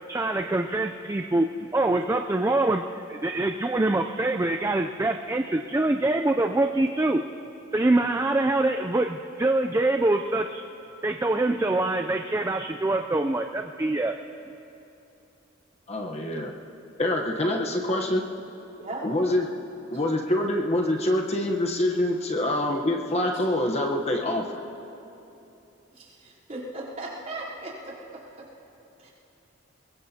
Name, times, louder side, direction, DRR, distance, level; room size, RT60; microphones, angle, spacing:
voice 1, 0.1-2.8 3.1-7.2 7.7-10.6 11.0-14.2, right 2 dB, 15° right, 5 dB, 0.3 m, -24 dB
voice 2, 15.9-16.5 17.0-18.2 19.0-19.5 19.9-24.5, left 1 dB, 30° left, 1 dB, 0.9 m, -25 dB
voice 3, 25.9-28.5 29.0-29.1, right 2 dB, 40° right, -8 dB, 3.5 m, -38 dB
23.0 x 21.5 x 2.8 m, 2.9 s
head